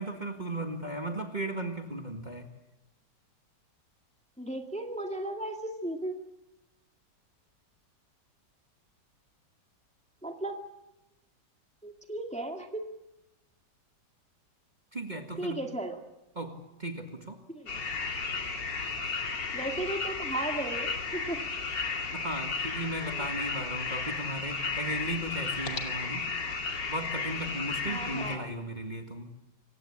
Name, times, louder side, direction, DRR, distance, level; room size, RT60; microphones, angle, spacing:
voice 1, 0.0-2.5 14.9-15.6 16.4-16.5 16.8-17.4 22.1-26.3 26.9-29.3, right 1 dB, 25° right, 4 dB, 2.0 m, -36 dB
voice 2, 4.4-6.2 10.2-10.6 11.8-12.8 15.4-16.0 17.5-17.8 19.5-21.4 23.0-23.3 27.9-28.5, right 1 dB, 5° left, 4 dB, 2.0 m, -35 dB
sound 1, 17.7-28.4, left 4 dB, 80° left, 3.3 m, -34 dB
27.5 x 16.5 x 8.7 m, 0.94 s
omnidirectional pair, 1.9 m